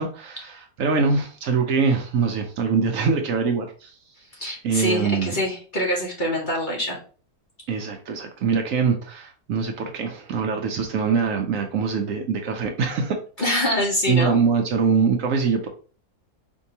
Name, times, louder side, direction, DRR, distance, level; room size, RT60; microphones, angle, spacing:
voice 1, 0.0-3.9 4.6-5.4 7.7-13.6 14.1-15.7, right 5 dB, 70° right, 3 dB, 0.9 m, -23 dB
voice 2, 4.4-7.0 13.4-14.4, left 1 dB, 40° left, -2 dB, 0.9 m, -25 dB
4.5 x 2.6 x 2.8 m, 0.39 s
omnidirectional pair, 1.6 m